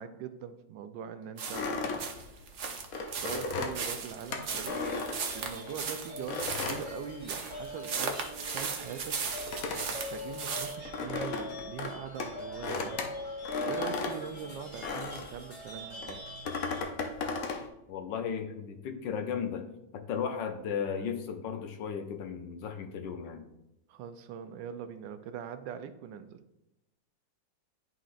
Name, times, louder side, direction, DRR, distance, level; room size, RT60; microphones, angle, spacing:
voice 1, 0.0-2.1 3.2-4.8 5.1-8.2 8.5-9.2 9.9-13.0 13.7-16.2 23.9-26.4, right 7 dB, 80° right, 10 dB, 1.2 m, -42 dB
sound 1, 1.4-10.8, right 5 dB, 60° right, 0.8 m, -37 dB
sound 2, 1.5-5.8 6.3-15.4 16.0-17.7, left 4 dB, 60° left, 1.0 m, -36 dB
sound 3, 4.6-16.8, left 1 dB, 45° left, 2.4 m, -42 dB
voice 2, 17.9-19.6 19.9-23.4, left 7 dB, 80° left, 6 dB, 1.4 m, -35 dB
11.0 x 3.9 x 2.5 m, 0.91 s
omnidirectional pair, 2.0 m